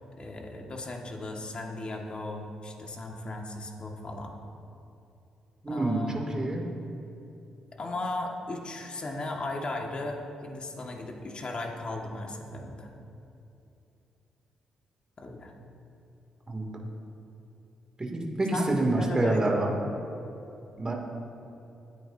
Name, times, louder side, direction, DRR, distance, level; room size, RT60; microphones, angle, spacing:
voice 1, 0.2-4.4 5.7-6.6 7.7-12.9 15.2-15.5 18.5-18.7 19.0-19.8, left 2 dB, 40° left, 1 dB, 2.0 m, -36 dB
voice 2, 5.6-6.6 16.5-16.9 18.1-19.7 20.8-20.9, right 2 dB, 25° right, 0 dB, 2.7 m, -27 dB
25.0 x 9.3 x 2.8 m, 2.7 s
hypercardioid pair, 40°, 3 cm